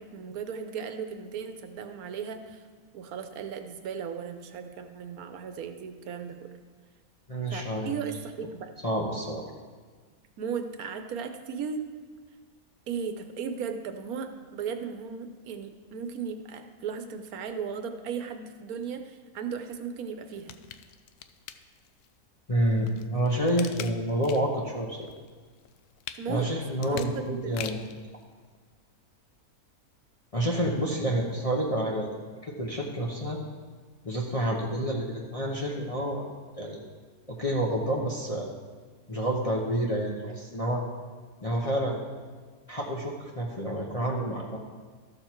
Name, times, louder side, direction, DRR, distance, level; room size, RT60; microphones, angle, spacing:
voice 1, 0.0-2.6 2.9-6.4 7.5-8.7 10.4-11.9 12.9-20.6 26.2-26.5 26.8-27.7, right 6 dB, 80° right, 7 dB, 1.3 m, -36 dB
voice 2, 7.3-7.9 8.8-9.4 22.5-25.1 26.3-27.8 30.3-32.1 32.5-33.4 34.0-36.2 36.6-36.8 37.3-38.5 39.1-40.8 41.4-42.0 42.7-44.6, right 1 dB, 25° left, -3 dB, 1.0 m, -28 dB
sound 1, 20.3-22.1 22.6-24.6 25.0-28.0 28.5-28.6, left 10 dB, 90° left, 1.1 m, -43 dB
13.5 x 6.6 x 4.5 m, 1.5 s
omnidirectional pair, 1.6 m